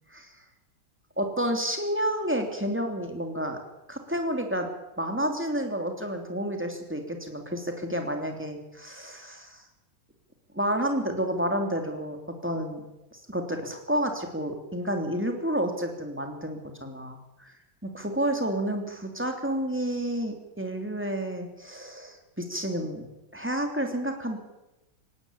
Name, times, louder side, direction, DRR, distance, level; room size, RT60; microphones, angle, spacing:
voice 1, 1.2-3.6 3.9-4.7 5.0-9.6 10.5-12.2 12.4-12.8 13.1-17.5 17.8-23.1 23.3-24.4, right 1 dB, 5° right, 4 dB, 3.1 m, -30 dB
19.0 x 16.5 x 8.7 m, 0.94 s
omnidirectional pair, 2.2 m